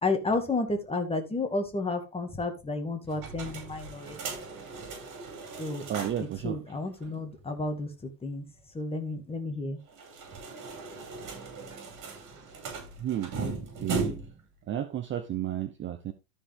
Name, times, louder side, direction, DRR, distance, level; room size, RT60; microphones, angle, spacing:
voice 1, 0.0-4.2 5.6-5.8 6.4-7.9 8.2-8.4 8.7-9.8, left 3 dB, 10° left, 2.1 m, -31 dB
sound 1, 3.1-6.4 6.7-6.8 7.0-7.1 9.9-14.4, right 4 dB, 40° right, 5.9 m, -37 dB
voice 2, 5.9-6.6 13.0-13.3 13.8-14.1 14.7-16.1, right 11 dB, 25° right, 0.8 m, -32 dB
13.5 x 5.1 x 3.5 m
hypercardioid pair, 110°, 49 cm